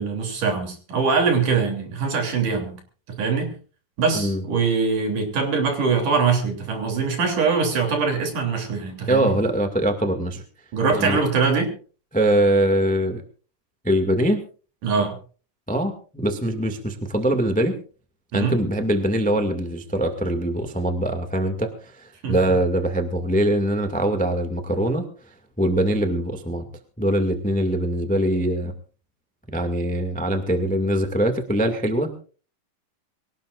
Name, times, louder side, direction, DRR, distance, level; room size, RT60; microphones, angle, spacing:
voice 1, 0.0-2.8 3.1-3.6 4.0-9.3 10.7-11.7 14.8-15.2 18.3-18.6 22.2-22.4, right 5 dB, 60° right, 4 dB, 4.7 m, -23 dB
voice 2, 9.1-10.4 10.9-11.2 12.1-13.2 13.8-14.5 15.7-17.7 18.3-25.0 25.6-26.7 27.0-28.7 29.5-32.2, right 1 dB, 5° left, 6 dB, 0.8 m, -22 dB
23.5 x 18.5 x 2.5 m, 0.38 s
omnidirectional pair, 4.2 m